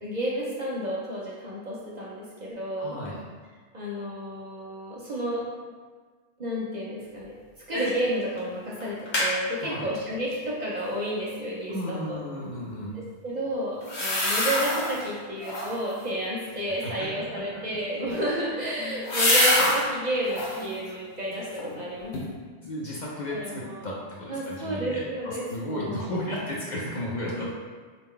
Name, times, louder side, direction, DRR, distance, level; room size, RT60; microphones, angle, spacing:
voice 1, 0.0-3.0 3.7-5.4 6.4-7.3 7.7-12.2 12.9-22.2 23.3-23.9 24.3-26.2 27.3-27.5, equal, 50° right, -5 dB, 0.6 m, -31 dB
voice 2, 2.8-3.2 9.6-9.9 11.7-13.0 16.8-17.1 17.4-17.7 22.6-27.5, left 1 dB, 50° left, -5 dB, 0.6 m, -34 dB
sound 1, 7.7-8.1 8.4-8.5 8.8-9.3 13.8-15.0 15.4-15.9 17.9-19.8 20.2-20.7 21.1-21.8 22.1-22.2, left 1 dB, 85° left, 1.2 m, -25 dB
3.8 x 2.2 x 3.7 m, 1.5 s
omnidirectional pair, 1.1 m